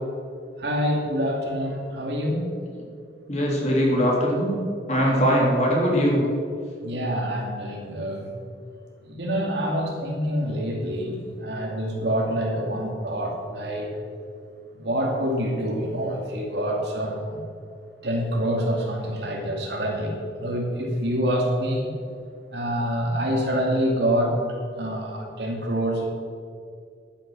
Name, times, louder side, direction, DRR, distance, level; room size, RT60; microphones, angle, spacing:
voice 1, 0.6-2.5 6.8-8.3 9.0-14.0 14.8-17.4 18.0-21.9 22.5-26.1, equal, 70° right, 0 dB, 2.6 m, -26 dB
voice 2, 3.3-4.6 4.9-6.2, equal, 40° left, -3 dB, 3.2 m, -21 dB
11.5 x 9.3 x 6.3 m, 2.4 s
head